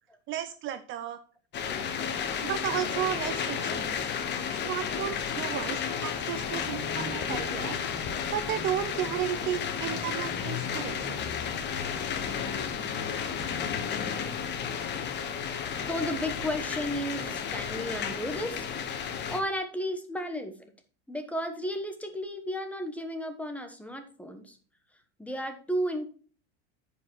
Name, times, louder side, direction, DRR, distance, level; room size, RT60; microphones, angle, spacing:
voice 1, 0.3-1.2 2.4-4.1 4.5-7.8 8.3-11.2, right 11 dB, 35° right, 11 dB, 0.6 m, -33 dB
sound 1, 1.5-19.4, left 7 dB, 30° left, 1.2 m, -32 dB
voice 2, 15.9-18.7 19.3-20.7 21.1-24.6 25.2-26.1, equal, 5° left, 7 dB, 1.1 m, -33 dB
9.6 x 5.3 x 4.4 m, 0.41 s
supercardioid pair, 135°, 34 cm